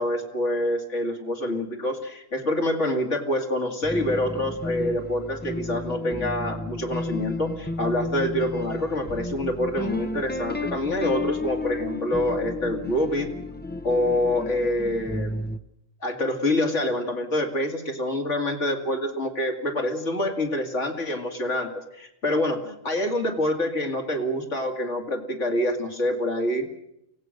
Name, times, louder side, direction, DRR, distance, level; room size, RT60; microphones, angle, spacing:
voice 1, 0.0-13.3 13.8-15.3 16.0-26.7, left 1 dB, 70° left, 3 dB, 2.8 m, -26 dB
sound 1, 3.8-15.6, left 2 dB, 10° left, 0.6 m, -33 dB
24.5 x 17.5 x 6.5 m, 0.80 s
omnidirectional pair, 1.3 m